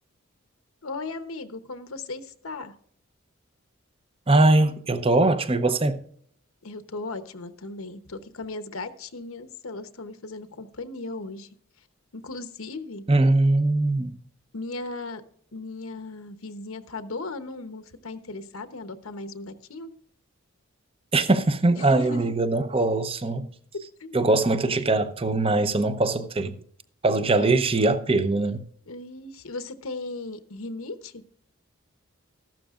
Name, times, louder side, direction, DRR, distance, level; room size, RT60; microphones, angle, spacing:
voice 1, 0.8-2.8 6.6-11.5 12.1-13.1 14.5-15.2 15.5-19.9 21.8-22.3 24.0-24.3 27.2-27.6 28.9-31.2, left 3 dB, 80° left, 1.0 m, -37 dB
voice 2, 4.3-6.0 13.1-14.2 21.1-23.5 24.1-26.6 27.0-28.6, right 2 dB, 25° right, 0.7 m, -21 dB
14.0 x 12.0 x 2.5 m
head